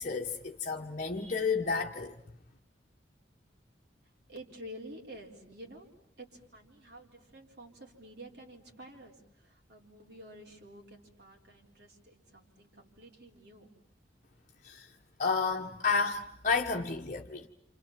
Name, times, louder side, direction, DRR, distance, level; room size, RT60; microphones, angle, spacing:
voice 1, 0.0-2.1 14.6-14.9 15.2-17.5, left 4 dB, 45° left, 1.2 m, -31 dB
voice 2, 4.3-5.9 6.2-13.7, right 1 dB, 65° right, 4.3 m, -50 dB
29.0 x 27.5 x 7.5 m
head